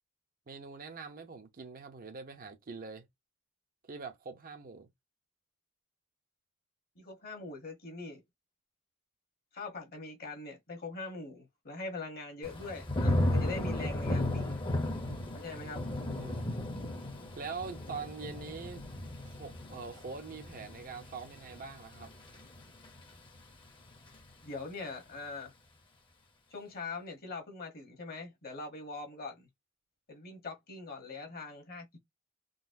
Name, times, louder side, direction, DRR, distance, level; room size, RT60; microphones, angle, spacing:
voice 1, 0.5-3.1 3.9-4.9 15.9-16.5 17.4-18.8 19.2-22.1, right 4 dB, 45° right, 0.6 m, -44 dB
voice 2, 7.0-8.2 9.5-14.6 15.3-15.8 24.4-25.5 26.5-29.5 30.1-32.0, left 3 dB, 50° left, 1.1 m, -42 dB
Thunder / Rain, 12.4-23.4 23.8-24.2, left 1 dB, 25° left, 0.7 m, -35 dB
3.9 x 2.1 x 2.6 m
head